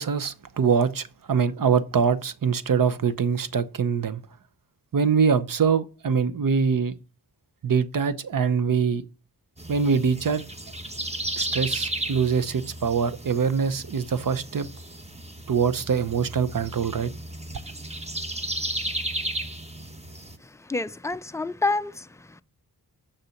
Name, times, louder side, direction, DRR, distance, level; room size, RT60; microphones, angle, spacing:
voice 1, 0.0-4.2 4.9-6.9 7.6-9.0 9.7-10.4 11.4-14.7 15.5-17.1, right 6 dB, 55° right, 0.8 m, -23 dB
sound 1, 9.6-20.4, right 1 dB, 15° right, 1.1 m, -34 dB
voice 2, 20.4-22.4, left 3 dB, 10° left, 0.4 m, -29 dB
6.7 x 5.8 x 7.0 m
cardioid pair, 65°, 40 cm